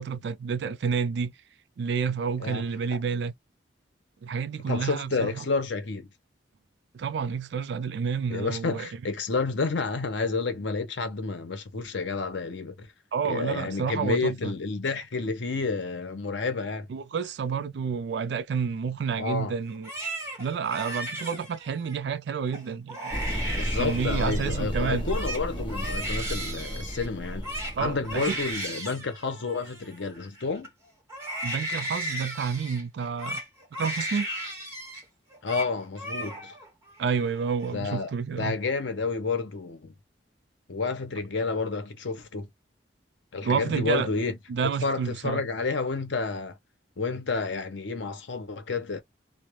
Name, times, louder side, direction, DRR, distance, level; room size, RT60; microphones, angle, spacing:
voice 1, 0.0-1.3 1.8-3.3 4.2-5.5 6.9-8.9 13.1-14.5 16.9-19.9 20.4-23.1 23.8-25.1 27.8-28.4 31.4-33.4 33.7-34.3 37.0-38.6 43.4-44.1 44.5-45.4, right 6 dB, 60° right, 0.3 m, -29 dB
voice 2, 4.7-6.1 8.3-12.9 13.2-16.9 19.2-19.5 23.5-27.5 27.8-30.7 35.4-36.5 37.7-39.9 40.7-42.5 43.3-44.4 44.8-46.6 47.0-49.0, left 4 dB, 75° left, 0.7 m, -30 dB
Crying sobbing, 19.7-22.0 22.5-22.6 22.9-24.6 24.9-30.7 31.1-35.0 35.3-35.7 36.0-36.7 37.0-37.7, right 1 dB, 15° right, 1.0 m, -36 dB
sound 1, 23.1-28.6, equal, 25° left, 0.8 m, -33 dB
2.3 x 2.1 x 2.9 m
head